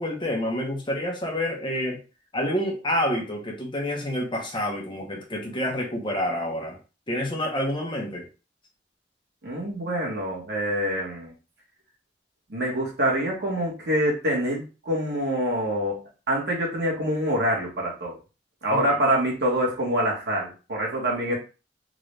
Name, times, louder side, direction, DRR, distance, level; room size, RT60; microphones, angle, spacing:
voice 1, 0.0-2.0 2.3-6.8 7.1-8.3 18.7-19.0, left 1 dB, 25° left, -1 dB, 1.1 m, -28 dB
voice 2, 9.4-11.3 12.5-18.2 18.6-21.3, equal, 70° right, -3 dB, 1.5 m, -26 dB
3.8 x 2.6 x 3.3 m, 0.32 s
head